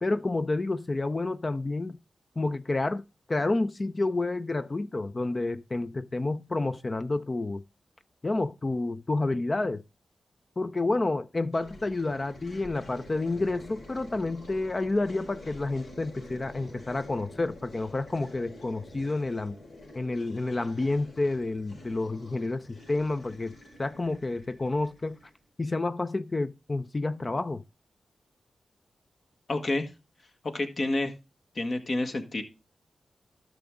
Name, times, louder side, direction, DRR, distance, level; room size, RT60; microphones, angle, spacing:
voice 1, 0.0-2.0 2.4-3.0 3.3-7.6 8.2-9.8 10.6-19.5 19.9-25.2 25.6-27.6, left 2 dB, 40° left, 0.5 m, -29 dB
sound 1, 11.5-25.4, left 1 dB, 75° left, 4.9 m, -48 dB
voice 2, 29.5-29.9 30.5-31.1 31.5-32.4, left 2 dB, 55° left, 1.6 m, -29 dB
12.0 x 6.1 x 3.7 m
cardioid pair, 50°, 0 cm